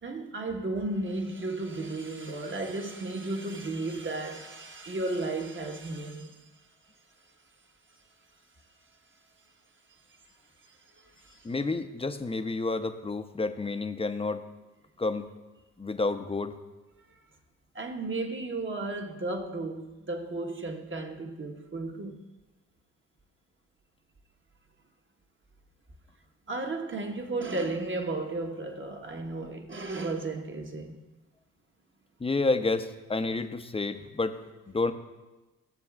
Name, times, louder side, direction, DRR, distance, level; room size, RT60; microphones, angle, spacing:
voice 1, 0.0-6.4 10.7-11.5 17.1-17.2 17.7-22.3 26.5-31.0, right 2 dB, 35° right, 1.3 m, -34 dB
voice 2, 11.4-14.4 15.0-15.3 15.8-16.6 32.2-34.4 34.7-34.9, left 3 dB, 15° left, 0.7 m, -29 dB
16.0 x 7.0 x 2.4 m
supercardioid pair, 50°, 36 cm